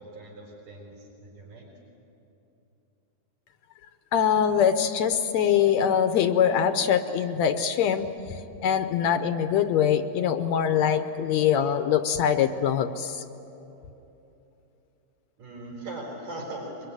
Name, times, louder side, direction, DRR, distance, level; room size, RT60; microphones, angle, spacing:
voice 1, 0.0-1.7 15.4-16.9, right 2 dB, 80° right, -4 dB, 6.4 m, -40 dB
voice 2, 4.1-13.2, left 8 dB, 70° left, 9 dB, 1.9 m, -23 dB
24.0 x 22.0 x 9.8 m, 2.9 s
omnidirectional pair, 3.6 m